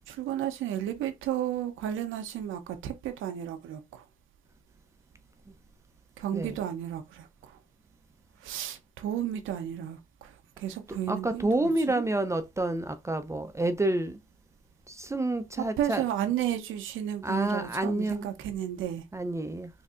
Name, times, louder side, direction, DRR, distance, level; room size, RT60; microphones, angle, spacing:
voice 1, 0.1-4.0 6.2-7.3 8.4-12.0 15.6-19.0, right 11 dB, 85° right, 0.7 m, -33 dB
voice 2, 10.9-14.2 14.9-16.0 17.2-18.3 19.1-19.7, right 2 dB, 15° right, 0.4 m, -29 dB
4.2 x 2.6 x 2.4 m
cardioid pair, 90°, 20 cm